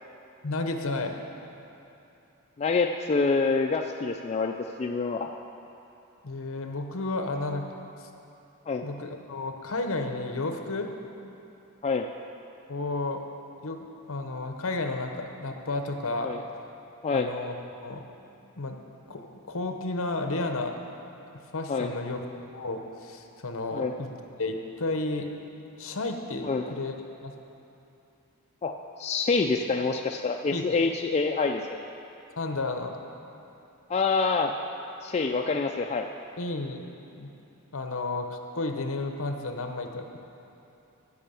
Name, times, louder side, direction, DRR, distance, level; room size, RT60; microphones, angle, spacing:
voice 1, 0.4-1.1 6.2-7.8 8.8-10.9 12.7-13.2 13.6-16.3 17.1-17.5 17.8-18.0 18.6-18.8 19.1-20.8 21.5-22.3 22.5-24.1 24.4-25.3 25.8-26.9 27.2-27.3 30.5-30.8 32.4-32.9 36.4-36.8 37.1-37.3 37.7-40.1, left 2 dB, 60° left, 5 dB, 0.9 m, -32 dB
voice 2, 2.6-5.3 8.7-8.8 11.8-12.1 16.2-16.4 17.0-17.3 21.7-21.9 23.7-23.9 26.4-26.7 28.6-31.9 33.9-34.5 35.0-36.1, left 4 dB, 30° left, 3 dB, 0.3 m, -26 dB
14.5 x 5.6 x 6.9 m, 2.9 s
head